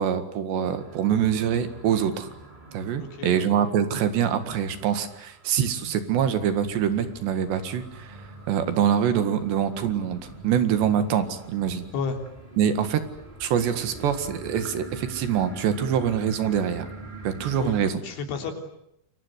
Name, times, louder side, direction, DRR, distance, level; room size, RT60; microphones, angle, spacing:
voice 1, 0.0-2.3 2.7-8.2 8.5-11.9 12.6-13.0 13.4-16.9 17.2-17.9, right 8 dB, 70° right, 10 dB, 3.9 m, -24 dB
sound 1, 0.5-17.9, right 3 dB, 15° right, 2.2 m, -45 dB
voice 2, 3.0-3.5 11.9-12.2 17.6-18.5, left 5 dB, 80° left, 4 dB, 5.9 m, -32 dB
sound 2, 5.9-17.5, right 1 dB, 40° right, 7.4 m, -46 dB
28.0 x 23.5 x 8.1 m, 0.77 s
omnidirectional pair, 5.4 m